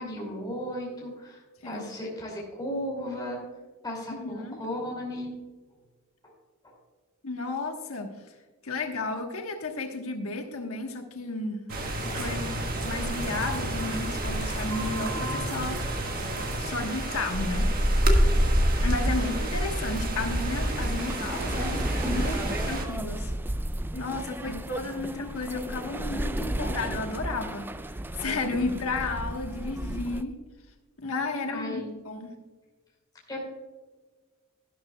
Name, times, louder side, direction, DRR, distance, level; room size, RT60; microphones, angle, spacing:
voice 1, 0.0-3.4 3.8-5.3 6.2-6.3 6.6-6.7 19.2-19.3 24.4-24.6 30.1-30.2 31.5-31.9 33.3-33.4, left 1 dB, 20° left, -2 dB, 2.5 m, -35 dB
voice 2, 4.1-4.6 7.2-8.2 8.6-11.7 12.0-12.5 12.8-15.8 16.6-17.7 18.8-23.3 23.9-30.3 31.0-32.3, left 3 dB, 90° left, 3 dB, 1.3 m, -33 dB
sound 1, 11.7-22.9, right 1 dB, 45° right, 1.6 m, -28 dB
sound 2, 11.7-16.6, equal, 80° right, 3.0 m, -35 dB
sound 3, 18.4-30.2, right 1 dB, 10° right, 0.3 m, -33 dB
12.5 x 12.0 x 2.3 m, 1.3 s
head